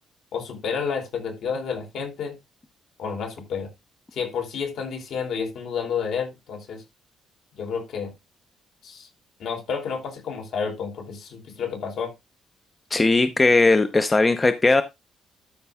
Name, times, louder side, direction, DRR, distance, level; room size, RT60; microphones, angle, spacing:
voice 1, 0.3-2.3 3.0-3.7 4.1-6.8 7.5-8.1 8.8-9.1 9.4-12.1, left 6 dB, 65° left, 3.9 m, -30 dB
voice 2, 12.9-14.8, left 3 dB, 20° left, 0.7 m, -18 dB
12.5 x 5.4 x 3.5 m
cardioid pair, 140°, 0 cm